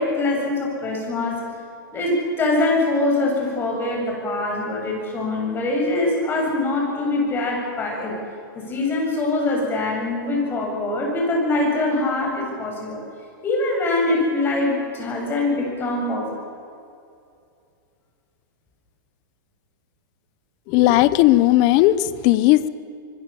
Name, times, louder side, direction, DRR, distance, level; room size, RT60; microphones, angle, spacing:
voice 1, 0.0-1.4 1.9-8.1 8.5-13.0 13.4-16.3, left 2 dB, 20° left, -1 dB, 7.9 m, -23 dB
voice 2, 20.7-22.7, left 15 dB, 40° left, 16 dB, 1.0 m, -16 dB
25.5 x 22.0 x 7.2 m, 2.5 s
supercardioid pair, 150°, 11 cm